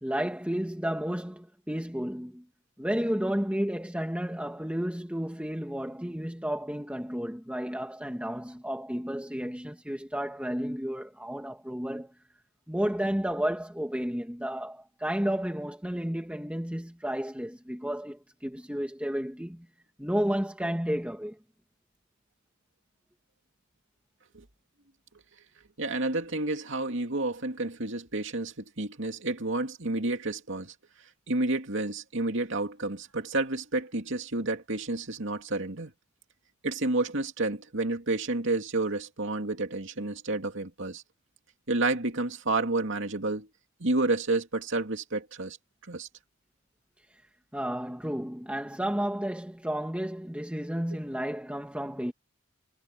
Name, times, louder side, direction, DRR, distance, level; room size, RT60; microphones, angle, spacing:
voice 1, 0.0-2.4 2.8-12.1 12.7-19.7 20.0-21.4 47.5-52.1, equal, 5° right, 2.0 m, -32 dB
voice 2, 25.8-30.7 31.3-35.9 36.6-41.0 41.7-43.5 43.8-45.6 45.9-46.1, right 2 dB, 65° right, 2.6 m, -30 dB
head